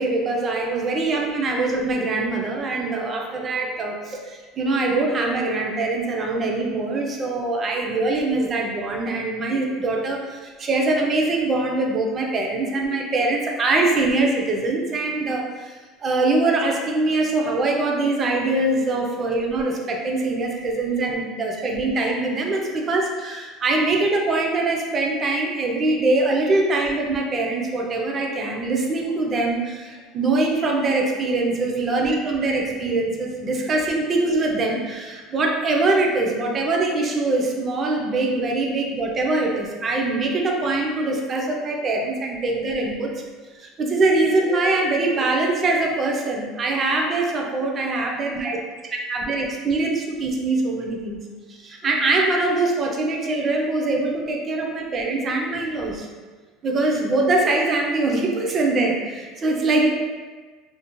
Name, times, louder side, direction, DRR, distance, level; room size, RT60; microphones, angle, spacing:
voice 1, 0.0-43.1 43.6-48.6 48.9-51.2 51.5-56.1 56.6-59.9, right 2 dB, 25° right, 0 dB, 0.3 m, -23 dB
2.4 x 2.0 x 2.9 m, 1.4 s
cardioid pair, 160°, 0 cm